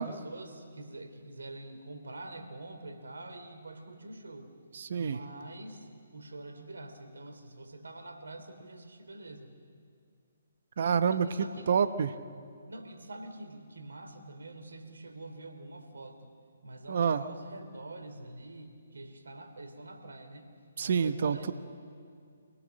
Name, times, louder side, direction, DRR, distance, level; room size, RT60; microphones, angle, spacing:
voice 1, 0.0-4.5 5.0-9.5 11.1-11.7 12.7-16.3 16.6-20.5 20.8-21.5, right 2 dB, 75° right, 6 dB, 2.9 m, -46 dB
voice 2, 4.7-5.2 10.8-11.3 11.7-12.1 16.9-17.2 20.8-21.5, right 6 dB, 55° right, 12 dB, 1.0 m, -27 dB
26.0 x 18.0 x 6.5 m, 2.3 s
figure-of-eight pair, 140°, 0 cm